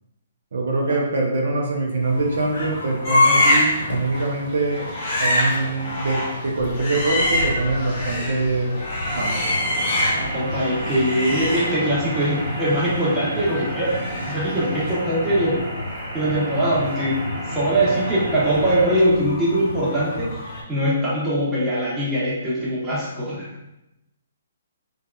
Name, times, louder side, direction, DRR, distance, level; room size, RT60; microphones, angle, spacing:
voice 1, 0.5-4.9 5.2-8.8 9.1-9.4, right 2 dB, 70° right, -1 dB, 0.5 m, -24 dB
sound 1, 2.0-20.6, left 1 dB, 60° left, 0.7 m, -34 dB
sound 2, 3.0-3.8 4.1-4.3 4.7-8.4 8.7-10.4 10.7-14.5 14.7-14.9, left 1 dB, 40° left, 1.1 m, -24 dB
sound 3, 9.0-19.0, right 1 dB, 40° right, 1.4 m, -32 dB
voice 2, 10.1-15.6 16.1-23.5, right 1 dB, 10° right, -8 dB, 0.9 m, -22 dB
2.7 x 2.3 x 2.3 m, 0.90 s
hypercardioid pair, 145°, 0 cm